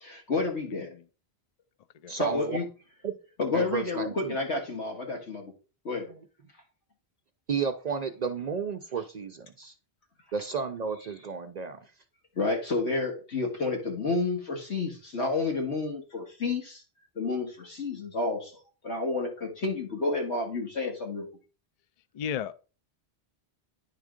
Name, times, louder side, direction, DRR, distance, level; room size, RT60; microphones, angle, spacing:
voice 1, 0.0-0.9 2.2-2.7 3.4-5.5 5.8-6.1 12.4-16.8 17.2-18.6 18.8-21.3, left 3 dB, 85° left, 2.0 m, -30 dB
voice 2, 2.1-2.6 3.0-3.2 3.5-4.4 6.0-6.2 7.5-9.7 10.3-11.8, right 6 dB, 55° right, 0.5 m, -32 dB
voice 3, 22.1-22.5, left 8 dB, 55° left, 0.4 m, -33 dB
9.7 x 3.5 x 5.1 m
omnidirectional pair, 1.1 m